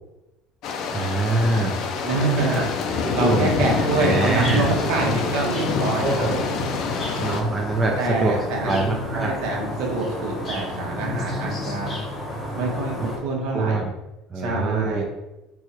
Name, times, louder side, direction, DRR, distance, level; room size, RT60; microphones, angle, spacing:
sound 1, 0.6-7.4, left 5 dB, 45° left, 0.5 m, -26 dB
voice 1, 0.9-1.8 2.5-2.6 3.0-3.6 4.0-4.7 6.0-6.4 7.1-8.4 8.6-9.3 13.0-13.1 13.5-13.9 14.3-15.0, right 2 dB, 15° right, -1 dB, 0.4 m, -24 dB
voice 2, 2.0-6.5 8.0-8.8 9.1-12.0 12.5-13.8 14.3-15.0, right 3 dB, 65° right, -1 dB, 1.3 m, -26 dB
sound 2, 3.6-13.2, left 1 dB, 25° left, 0.9 m, -32 dB
4.6 x 2.4 x 4.3 m, 1.0 s
cardioid pair, 170°, 0 cm